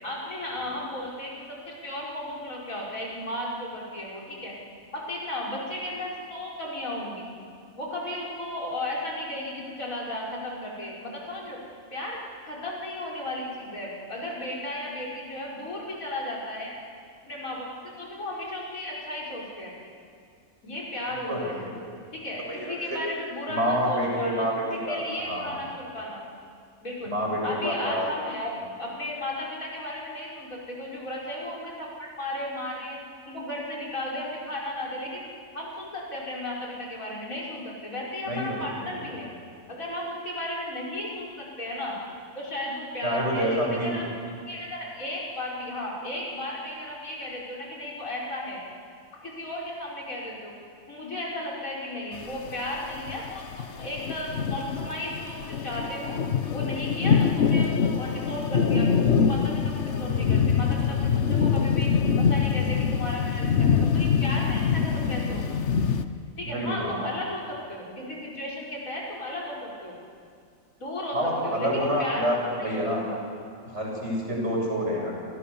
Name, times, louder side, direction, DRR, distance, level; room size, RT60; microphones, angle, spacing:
voice 1, 0.0-4.6 4.9-7.3 7.8-11.6 11.9-12.2 12.4-16.8 17.2-19.7 20.6-21.6 22.1-24.5 24.9-26.2 26.8-27.1 27.4-28.5 28.8-33.0 33.2-35.2 35.5-39.3 39.7-42.0 42.3-44.0 44.5-48.6 49.2-50.5 50.9-56.2 56.5-58.9 59.2-61.9 62.2-65.8 66.4-69.9 70.8-73.2, left 1 dB, 75° left, -3 dB, 6.2 m, -35 dB
voice 2, 21.3-21.9 22.5-23.0 23.5-25.6 27.0-28.1 38.3-39.0 43.0-44.0 59.8-60.3 66.4-67.2 71.1-73.0 73.6-75.1, equal, 55° right, -2 dB, 7.6 m, -28 dB
sound 1, 52.2-66.0, left 6 dB, 60° left, 1.3 m, -24 dB
29.5 x 27.0 x 7.1 m, 2.3 s
omnidirectional pair, 1.4 m